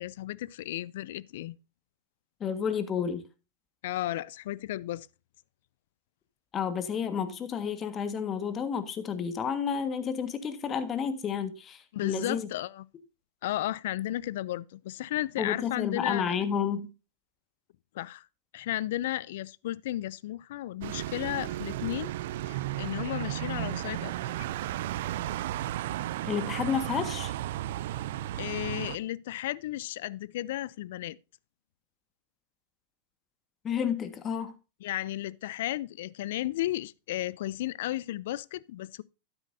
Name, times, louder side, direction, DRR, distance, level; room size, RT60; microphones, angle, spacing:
voice 1, 0.0-1.6 3.8-5.1 11.9-12.9 13.4-16.2 17.9-18.2 18.5-22.1 22.5-24.5 28.4-31.2 34.8-39.0, left 14 dB, 70° left, 0.4 m, -34 dB
voice 2, 2.4-3.2 6.5-12.5 15.4-16.9 26.2-27.3 33.6-34.5, left 7 dB, 30° left, 1.6 m, -31 dB
sound 1, 20.8-29.0, right 14 dB, 65° right, 0.4 m, -34 dB
12.0 x 9.8 x 2.7 m
hypercardioid pair, 100°, 0 cm